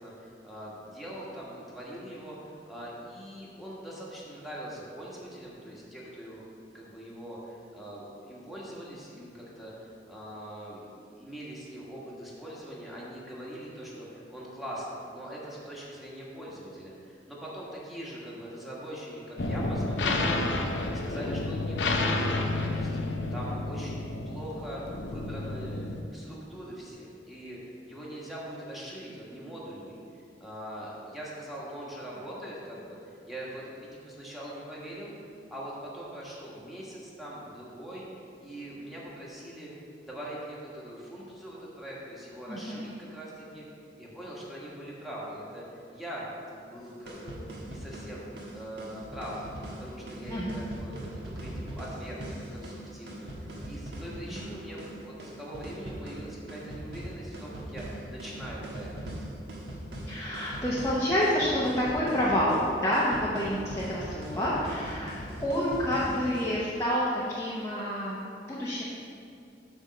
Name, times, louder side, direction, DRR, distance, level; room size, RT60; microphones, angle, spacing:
voice 1, 0.0-6.4 6.7-25.8 26.1-35.1 35.5-43.6 44.0-47.4 47.7-48.2 48.5-49.4 49.8-52.2 52.5-58.9 64.3-64.8, equal, ahead, -7 dB, 1.5 m, -42 dB
sound 1, 19.4-26.0, left 2 dB, 85° left, 0.7 m, -30 dB
voice 2, 42.5-42.9 50.3-50.6 54.3-54.5 60.1-68.8, equal, 15° left, -8 dB, 0.8 m, -28 dB
sound 2, 46.8-66.6, right 1 dB, 65° right, 1.4 m, -40 dB
8.8 x 3.6 x 6.4 m, 2.4 s
head